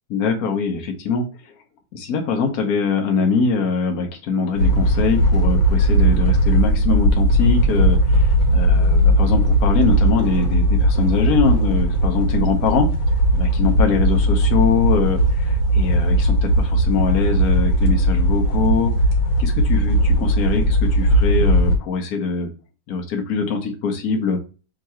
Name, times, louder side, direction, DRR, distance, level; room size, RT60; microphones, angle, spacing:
voice 1, 0.1-1.5 1.9-12.9 13.3-18.9 19.4-22.5 22.9-24.4, left 5 dB, 60° left, 3 dB, 1.2 m, -23 dB
sound 1, 4.6-21.8, right 1 dB, 75° left, 1.7 m, -17 dB
3.7 x 2.9 x 4.2 m, 0.33 s
omnidirectional pair, 2.0 m